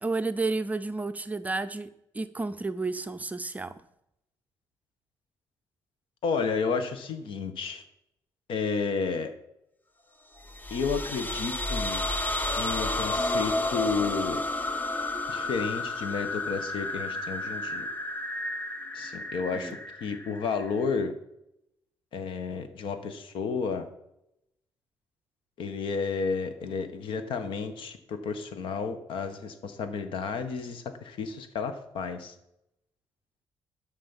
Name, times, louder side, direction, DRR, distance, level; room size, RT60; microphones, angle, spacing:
voice 1, 0.0-3.8 19.5-19.8, right 3 dB, 15° right, 0.5 m, -31 dB
voice 2, 6.2-7.8 8.5-9.3 10.7-12.0 12.6-14.4 15.3-17.9 18.9-21.1 22.1-23.9 25.6-32.3, left 5 dB, 70° left, 1.5 m, -31 dB
sound 1, 10.4-21.0, left 2 dB, 20° left, 0.8 m, -31 dB
12.0 x 5.5 x 7.3 m
cardioid pair, 130°, 9 cm